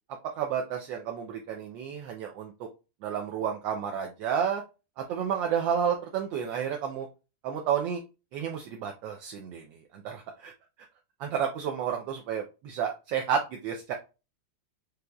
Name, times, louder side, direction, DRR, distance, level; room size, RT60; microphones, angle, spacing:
voice 1, 0.4-2.7 3.0-4.6 5.0-7.1 7.4-8.0 8.3-9.6 9.9-10.5 11.2-13.9, right 8 dB, 75° right, 2 dB, 1.3 m, -31 dB
5.8 x 3.4 x 2.2 m, 0.29 s
omnidirectional pair, 2.1 m